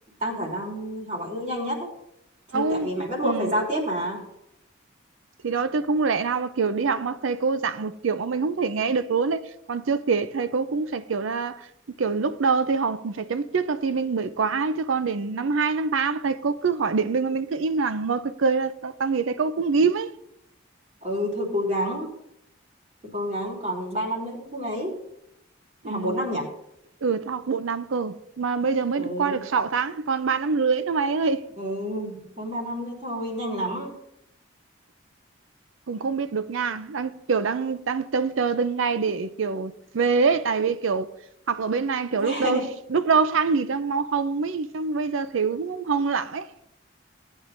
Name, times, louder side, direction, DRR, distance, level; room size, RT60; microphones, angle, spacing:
voice 1, 0.2-1.9 2.5-4.2 21.0-22.1 23.1-24.9 25.8-26.5 29.0-29.4 31.6-33.9 42.1-42.7, equal, 35° right, 3.3 m, -29 dB
voice 2, 2.5-2.9 3.2-3.5 5.4-11.7 12.0-20.1 25.8-26.2 27.0-31.4 35.9-41.1 41.5-42.6 42.9-46.5, right 5 dB, 85° right, 0.5 m, -25 dB
18.5 x 9.1 x 2.6 m
head